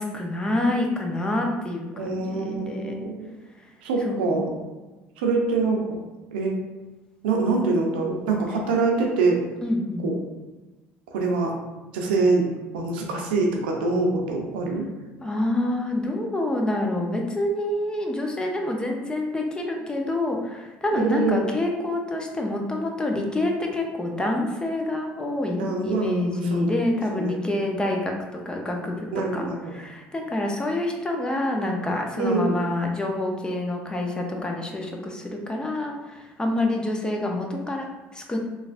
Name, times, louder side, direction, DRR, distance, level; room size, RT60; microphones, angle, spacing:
voice 1, 0.0-3.0 4.0-4.4 9.6-10.1 15.2-29.1 29.3-38.4, left 1 dB, 15° left, 1 dB, 0.6 m, -27 dB
voice 2, 1.9-3.3 3.8-4.5 5.2-6.0 6.3-6.6 7.2-9.4 10.0-10.2 11.1-11.5 11.9-12.5 12.7-14.8 21.0-21.5 25.6-26.7 27.1-27.4 29.1-29.7 32.2-32.6, right 3 dB, 90° right, 1 dB, 0.5 m, -24 dB
3.2 x 2.3 x 2.5 m, 1.2 s
supercardioid pair, 75°, 5 cm